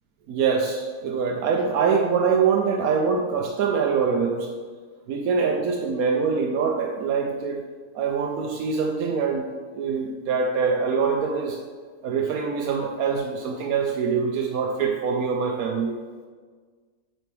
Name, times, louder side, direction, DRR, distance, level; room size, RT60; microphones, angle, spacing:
voice 1, 0.3-4.5 5.1-7.6 7.9-9.5 9.8-11.6 12.0-15.9, right 5 dB, 75° right, 1 dB, 1.0 m, -24 dB
9.2 x 4.3 x 3.3 m, 1.5 s
omnidirectional pair, 1.6 m